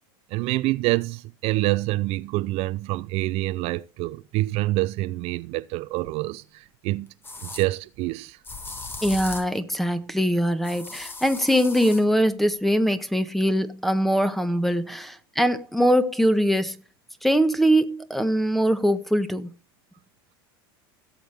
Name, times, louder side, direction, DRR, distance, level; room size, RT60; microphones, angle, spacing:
voice 1, 0.3-7.1 7.4-8.4, right 19 dB, 50° right, 0.5 m, -26 dB
sound 1, 6.1-6.2 7.2-7.7 8.4-9.6 10.6-12.0, left 3 dB, 15° left, 1.5 m, -37 dB
voice 2, 9.0-16.8 17.2-19.5, equal, ahead, 1.3 m, -22 dB
17.0 x 7.3 x 3.5 m
hypercardioid pair, 105°, 13 cm